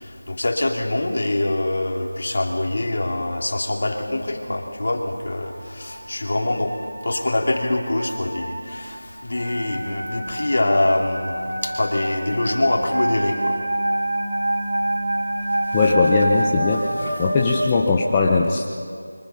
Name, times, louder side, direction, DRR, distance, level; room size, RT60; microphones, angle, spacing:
voice 1, 0.3-6.7 7.0-9.0 9.2-13.6 16.7-17.2, left 1 dB, 45° left, 2 dB, 2.8 m, -24 dB
sound 1, 5.5-17.5, right 1 dB, 50° right, 6.2 m, -27 dB
voice 2, 15.7-16.9 17.2-18.6, left 4 dB, 10° left, -2 dB, 0.7 m, -19 dB
25.5 x 24.0 x 5.7 m, 2.1 s
figure-of-eight pair, 175°, 0 cm